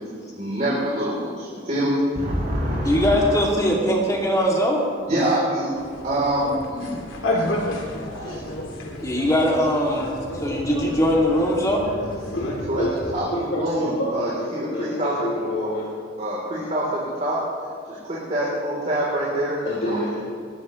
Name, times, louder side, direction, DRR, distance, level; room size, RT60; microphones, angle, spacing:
voice 1, 0.3-3.3 5.1-5.7 6.0-6.9 7.3-7.4 7.7-7.9 8.2-8.4 12.3-12.4 12.7-12.8 13.1-15.3 15.6-15.7 16.2-17.4 17.9-20.0, right 1 dB, 35° right, -6 dB, 3.5 m, -25 dB
voice 2, 2.8-4.8 9.0-10.1 10.4-11.9, equal, 20° left, -3 dB, 2.5 m, -21 dB
sound 1, 5.8-13.2, left 1 dB, 85° left, 2.6 m, -31 dB
voice 3, 12.3-12.9 13.3-15.9 19.6-20.2, left 1 dB, 60° left, -5 dB, 3.3 m, -28 dB
21.0 x 20.5 x 3.2 m, 2.2 s
head